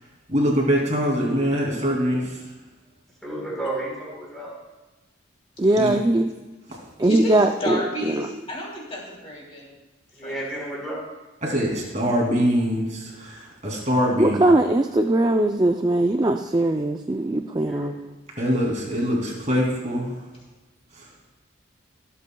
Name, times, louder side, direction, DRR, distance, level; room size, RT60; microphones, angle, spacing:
voice 1, 0.3-2.4 5.8-5.9 11.4-14.4 18.4-20.1 21.0-21.1, equal, 35° right, -2 dB, 2.7 m, -23 dB
voice 2, 3.2-4.6 10.1-11.1 17.6-17.9, right 1 dB, ahead, -5 dB, 3.8 m, -32 dB
voice 3, 5.6-6.3 7.0-8.3 14.2-18.1, right 1 dB, 20° right, 4 dB, 0.4 m, -20 dB
voice 4, 7.0-9.7 10.2-10.4, equal, 30° left, -3 dB, 2.9 m, -32 dB
24.5 x 8.3 x 2.3 m, 1.2 s
head